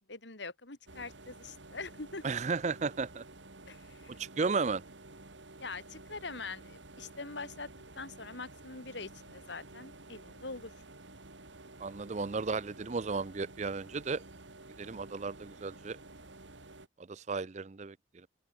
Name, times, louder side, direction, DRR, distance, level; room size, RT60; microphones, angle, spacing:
voice 1, 0.1-2.3 3.7-4.2 5.6-7.7 8.0-10.7, left 3 dB, 75° left, 3.6 m, -43 dB
sound 1, 0.9-16.9, right 2 dB, 85° right, 3.2 m, -52 dB
voice 2, 2.2-3.2 4.2-4.8 11.8-14.2 14.8-16.0 17.0-18.0, right 4 dB, 40° right, 0.5 m, -34 dB
open air
head